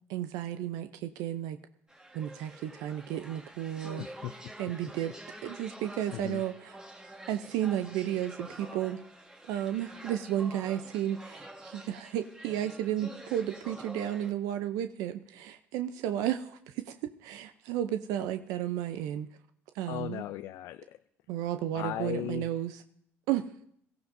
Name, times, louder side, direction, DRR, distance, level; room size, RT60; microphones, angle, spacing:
voice 1, 0.1-1.6 2.1-4.0 4.6-5.1 5.4-6.8 7.3-9.0 9.5-19.3 19.7-20.2 21.3-22.8 23.3-23.5, right 11 dB, 85° right, 9 dB, 0.5 m, -33 dB
sound 1, 1.9-14.3, right 1 dB, 15° right, 1.6 m, -48 dB
voice 2, 4.0-4.7 6.1-6.4 19.9-21.0 21.7-22.5, left 13 dB, 80° left, 10 dB, 0.4 m, -37 dB
23.0 x 14.5 x 2.6 m, 0.68 s
cardioid pair, 90°, 6 cm